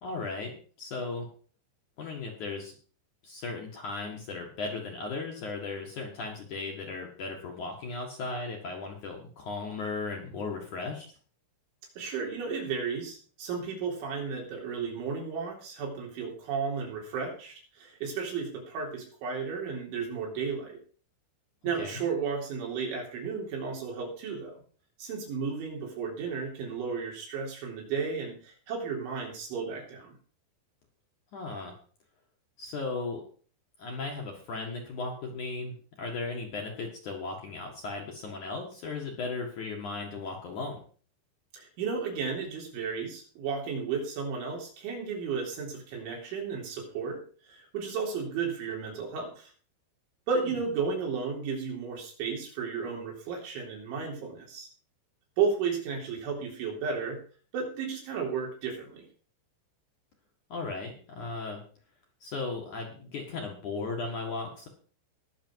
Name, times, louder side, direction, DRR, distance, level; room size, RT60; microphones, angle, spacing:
voice 1, 0.0-1.3 2.0-2.7 3.2-11.1 21.8-22.0 31.3-31.7 32.6-33.2 33.8-40.8 50.4-50.5 60.5-61.6 62.2-64.7, left 3 dB, 55° left, 1 dB, 2.5 m, -36 dB
voice 2, 12.0-20.8 21.6-24.6 25.0-30.2 41.5-47.2 47.5-49.5 50.3-54.7 55.4-57.2 57.5-59.0, right 5 dB, 75° right, -1 dB, 6.0 m, -33 dB
20.5 x 6.8 x 4.7 m, 0.43 s
omnidirectional pair, 5.4 m